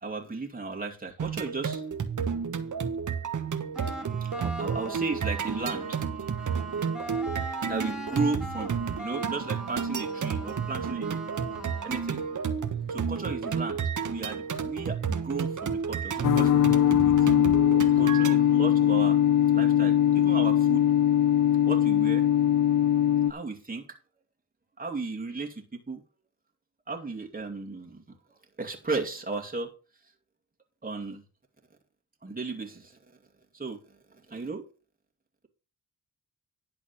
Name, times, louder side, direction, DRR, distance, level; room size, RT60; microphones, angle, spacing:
voice 1, 0.0-1.8 4.2-6.0 7.6-11.2 11.8-12.2 12.9-13.8 14.1-16.5 17.0-17.2 17.9-19.2 19.5-20.9 21.6-22.2 23.3-24.0 24.8-26.0 26.9-28.0 28.6-29.7 30.8-31.2 32.2-33.0 33.5-33.8 34.3-34.7, right 3 dB, 25° right, 2.4 m, -35 dB
sound 1, 1.2-18.3, right 6 dB, 60° right, 1.3 m, -31 dB
sound 2, 3.7-12.6, right 2 dB, ahead, 3.1 m, -40 dB
sound 3, 16.2-23.3, left 10 dB, 60° left, 0.8 m, -21 dB
11.0 x 4.1 x 7.1 m
cardioid pair, 55°, 35 cm